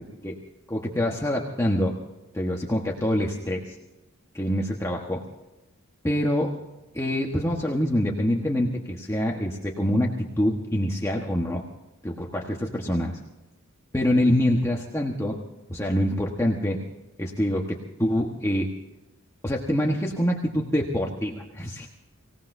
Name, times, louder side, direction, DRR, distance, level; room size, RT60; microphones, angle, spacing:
voice 1, 0.7-1.9 2.3-3.8 4.3-5.2 6.0-6.5 6.9-10.1 10.4-11.6 12.0-13.2 13.9-15.4 15.7-16.8 17.2-18.7 19.4-21.9, left 1 dB, 15° left, -1 dB, 1.3 m, -25 dB
25.0 x 17.5 x 2.7 m, 1.1 s
head